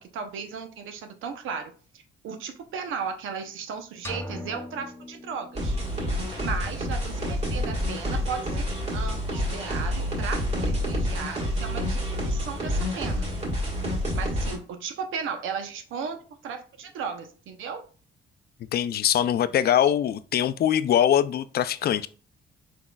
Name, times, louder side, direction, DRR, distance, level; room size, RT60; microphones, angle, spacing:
voice 1, 0.0-5.7 6.4-8.7 8.9-13.3 14.1-17.8, right 6 dB, 80° right, 0.8 m, -35 dB
sound 1, 4.0-6.0, left 1 dB, 15° left, 0.7 m, -39 dB
sound 2, 5.5-14.6, equal, 35° right, 1.9 m, -28 dB
voice 2, 18.7-22.1, left 10 dB, 50° left, 0.4 m, -22 dB
4.9 x 4.0 x 2.3 m
cardioid pair, 90°, 20 cm